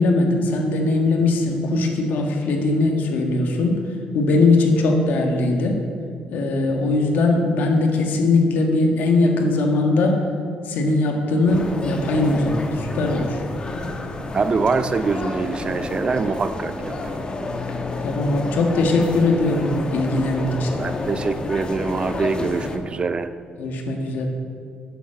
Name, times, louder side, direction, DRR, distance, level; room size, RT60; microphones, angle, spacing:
voice 1, 0.0-3.8 4.1-5.8 6.3-10.2 10.7-13.4 18.0-20.7 23.6-24.3, left 2 dB, 75° left, 2 dB, 1.8 m, -20 dB
sound 1, 11.5-22.8, left 2 dB, 30° left, 1.1 m, -30 dB
voice 2, 14.3-17.0 20.8-23.3, right 4 dB, 35° right, 11 dB, 0.5 m, -24 dB
10.0 x 7.3 x 7.6 m, 2.3 s
cardioid pair, 115°, 3 cm